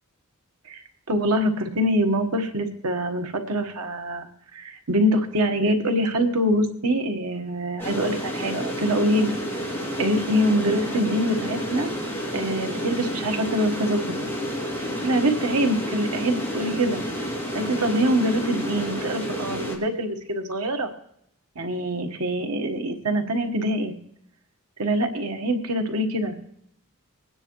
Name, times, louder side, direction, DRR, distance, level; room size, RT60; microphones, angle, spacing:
voice 1, 0.6-9.4 10.0-11.9 12.3-14.0 15.0-17.0 17.5-20.9 21.6-23.9 24.8-26.4, equal, 90° right, 5 dB, 1.4 m, -24 dB
sound 1, 7.8-19.8, equal, 10° left, 2.8 m, -30 dB
21.0 x 9.8 x 3.2 m, 0.74 s
head